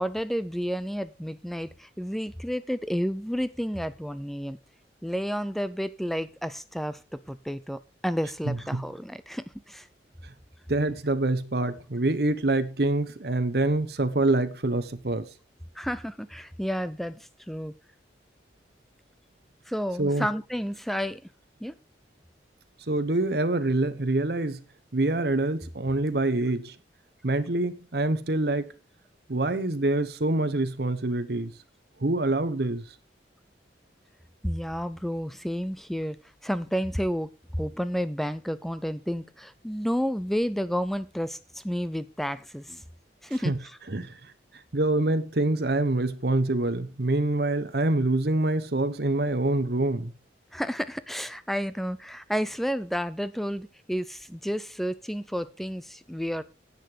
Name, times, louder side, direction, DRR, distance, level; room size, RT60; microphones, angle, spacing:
voice 1, 0.0-4.6 5.0-7.0 7.3-9.9 15.8-17.7 19.7-21.2 21.6-21.8 34.4-36.2 36.4-42.8 43.2-43.5 50.5-56.4, equal, ahead, 0.4 m, -31 dB
voice 2, 8.5-8.8 10.7-15.3 20.0-20.3 22.9-24.6 24.9-26.7 27.2-28.7 29.3-31.5 32.0-32.9 43.4-43.6 43.9-44.2 44.7-50.1, right 2 dB, 60° right, 1.0 m, -25 dB
10.0 x 8.0 x 5.0 m
head